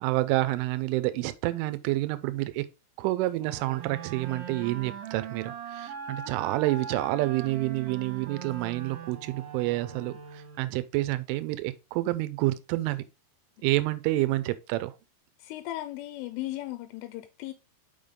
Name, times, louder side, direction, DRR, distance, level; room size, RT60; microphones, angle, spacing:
voice 1, 0.0-2.7 3.0-13.0 13.6-14.9, right 17 dB, 85° right, 3.1 m, -28 dB
sound 1, 3.4-10.8, right 7 dB, 65° right, 2.5 m, -40 dB
voice 2, 15.4-17.5, left 15 dB, 85° left, 3.1 m, -36 dB
6.8 x 5.9 x 3.7 m
omnidirectional pair, 5.6 m